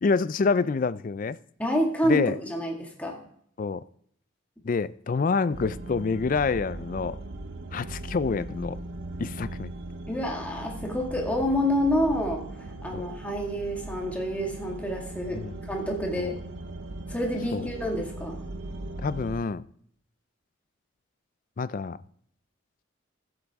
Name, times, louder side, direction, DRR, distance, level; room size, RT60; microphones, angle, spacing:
voice 1, 0.0-1.4 2.0-2.4 3.6-3.8 4.6-7.2 7.7-8.8 9.2-9.7 12.9-13.1 15.3-15.6 16.2-16.4 17.5-17.7 19.0-19.7 21.6-22.0, left 4 dB, 40° left, 0.3 m, -27 dB
voice 2, 1.6-3.2 10.1-16.4 17.1-18.4, equal, 5° left, 1.9 m, -28 dB
sound 1, 5.5-19.4, right 2 dB, 65° right, 0.7 m, -39 dB
15.0 x 8.0 x 3.6 m
head